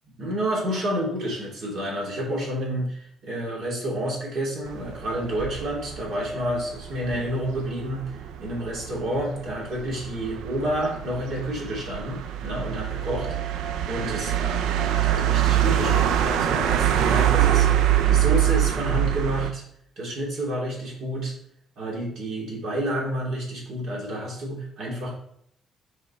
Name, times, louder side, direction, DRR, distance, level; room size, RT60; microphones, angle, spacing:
voice 1, 0.2-19.6 20.0-21.3 21.8-25.1, right 1 dB, 65° right, -2 dB, 2.8 m, -30 dB
sound 1, 4.7-19.5, right 11 dB, 90° right, 0.5 m, -24 dB
5.3 x 4.9 x 4.4 m, 0.72 s
cardioid pair, 110°, 0 cm